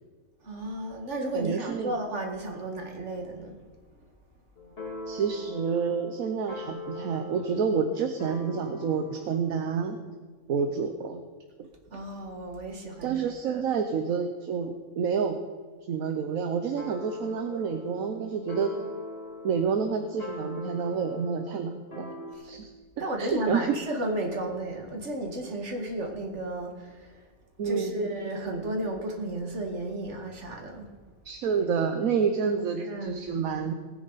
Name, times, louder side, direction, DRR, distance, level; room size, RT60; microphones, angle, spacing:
voice 1, 0.4-3.5 11.9-13.2 13.5-13.6 23.0-27.0 27.6-30.9 32.8-33.2, right 1 dB, 55° right, 2 dB, 2.3 m, -33 dB
voice 2, 1.3-2.0 5.1-10.0 10.5-11.2 11.6-11.7 13.0-15.4 15.9-18.7 19.4-22.1 22.4-22.7 23.0-23.8 27.6-28.0 31.2-33.7, right 6 dB, 75° right, 6 dB, 1.3 m, -29 dB
sound 1, 4.6-9.3 16.8-22.3, left 2 dB, 45° left, 2.8 m, -41 dB
19.0 x 9.6 x 4.1 m, 1.5 s
omnidirectional pair, 1.5 m